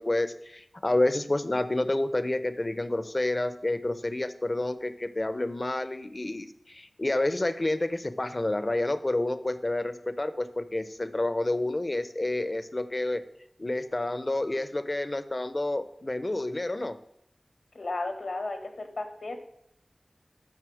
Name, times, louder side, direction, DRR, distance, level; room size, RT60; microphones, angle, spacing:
voice 1, 0.0-13.2 13.6-17.0, left 2 dB, 40° left, 11 dB, 0.8 m, -29 dB
voice 2, 17.7-19.4, left 2 dB, 90° left, 5 dB, 1.5 m, -34 dB
11.0 x 5.4 x 6.4 m, 0.76 s
wide cardioid pair, 40°, 0 cm